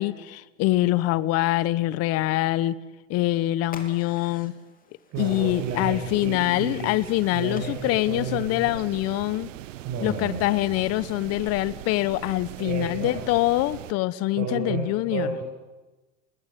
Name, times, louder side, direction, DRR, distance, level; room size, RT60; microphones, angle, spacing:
voice 1, 0.0-2.7 3.1-4.5 5.2-9.5 10.0-15.4, left 17 dB, 40° left, 18 dB, 1.0 m, -24 dB
sound 1, 3.6-8.8, left 5 dB, 20° left, 3.1 m, -50 dB
voice 2, 5.1-6.9 7.3-8.8 9.8-10.5 12.6-13.3 14.4-15.4, right 5 dB, 45° right, -2 dB, 5.9 m, -32 dB
sound 2, 5.1-13.9, right 14 dB, 75° right, 1.0 m, -40 dB
21.5 x 17.5 x 9.4 m, 1.2 s
hypercardioid pair, 120°, 38 cm